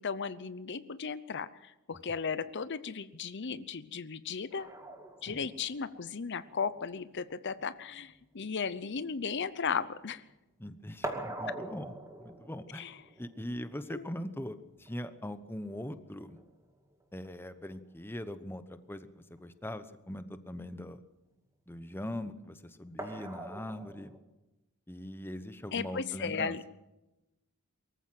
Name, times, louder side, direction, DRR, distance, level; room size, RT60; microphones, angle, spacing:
voice 1, 0.0-4.7 5.2-10.2 12.7-12.9 13.9-14.0 25.7-26.6, left 5 dB, 50° left, 14 dB, 0.7 m, -36 dB
sound 1, 4.5-10.2 10.5-17.5 18.9-19.0 19.4-19.5 23.0-24.2, right 1 dB, 15° right, 2.3 m, -45 dB
voice 2, 10.6-11.9 12.2-12.9 13.2-16.4 17.1-19.1 19.4-21.0 21.7-24.1 24.9-26.6, left 1 dB, 10° left, 11 dB, 1.0 m, -41 dB
23.5 x 15.0 x 7.7 m, 0.98 s
head